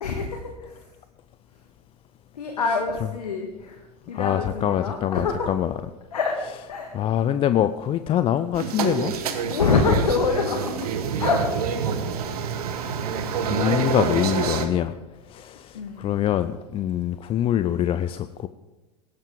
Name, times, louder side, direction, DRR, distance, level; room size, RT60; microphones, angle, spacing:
voice 1, 0.0-0.9 2.3-5.5 6.1-6.3 6.7-7.0 9.2-10.8 11.2-11.4 11.8-12.1 13.6-14.5 15.7-16.2, left 4 dB, 75° left, 3 dB, 1.6 m, -26 dB
voice 2, 4.1-5.7 6.9-9.2 13.5-14.9 15.3-18.5, left 11 dB, 25° left, 12 dB, 0.5 m, -24 dB
sound 1, 8.5-14.7, right 7 dB, 70° right, 1.5 m, -27 dB
17.5 x 11.5 x 3.7 m, 1.1 s
figure-of-eight pair, 85°, 20 cm